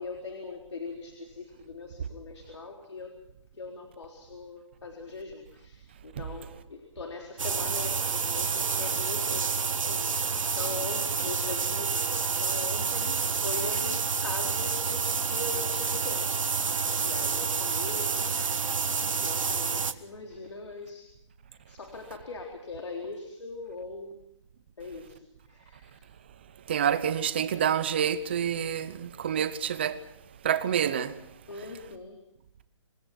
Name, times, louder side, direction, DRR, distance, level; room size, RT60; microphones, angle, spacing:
voice 1, 0.0-3.1 3.5-16.7 17.0-18.5 19.1-21.1 21.5-24.2 24.8-25.2 25.5-26.1 31.5-32.2, left 3 dB, 60° left, 3.8 m, -41 dB
sound 1, 7.4-19.9, right 5 dB, 85° right, 1.6 m, -29 dB
voice 2, 26.7-30.0 30.4-31.2, right 8 dB, 20° right, 0.8 m, -28 dB
27.5 x 19.5 x 6.0 m
hypercardioid pair, 175°, 16 cm